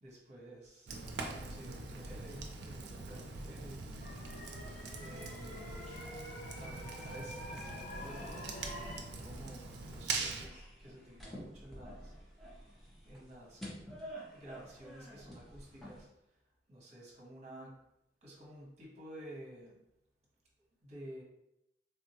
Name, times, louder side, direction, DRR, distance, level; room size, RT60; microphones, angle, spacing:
voice 1, 0.0-1.0 1.2-3.8 4.1-4.5 5.0-6.1 6.6-12.1 13.0-13.6 14.3-16.1 16.7-17.7 18.2-19.8 20.8-21.2, right 1 dB, 40° right, -3 dB, 0.9 m, -52 dB
Fire, 0.9-10.5, right 3 dB, 65° right, 0.4 m, -43 dB
sound 1, 4.0-9.0, left 1 dB, 45° left, 0.5 m, -47 dB
sound 2, 5.7-16.0, equal, ahead, 0.7 m, -51 dB
3.4 x 2.1 x 2.8 m, 0.83 s
head